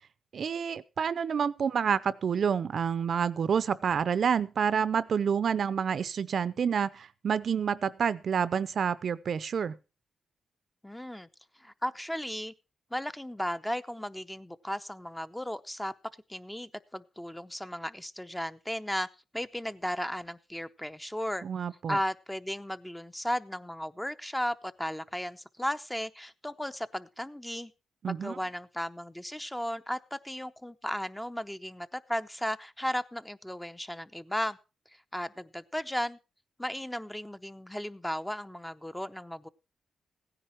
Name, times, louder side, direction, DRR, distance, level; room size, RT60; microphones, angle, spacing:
voice 1, 0.3-9.8 21.4-22.0 28.0-28.4, right 7 dB, 65° right, 0.6 m, -28 dB
voice 2, 10.8-11.3 11.6-12.5 12.9-15.9 16.3-19.1 19.3-21.4 21.9-27.7 28.1-34.6 35.1-36.2 36.6-39.5, equal, 5° left, 0.7 m, -35 dB
16.0 x 10.0 x 4.4 m
cardioid pair, 75°, 0 cm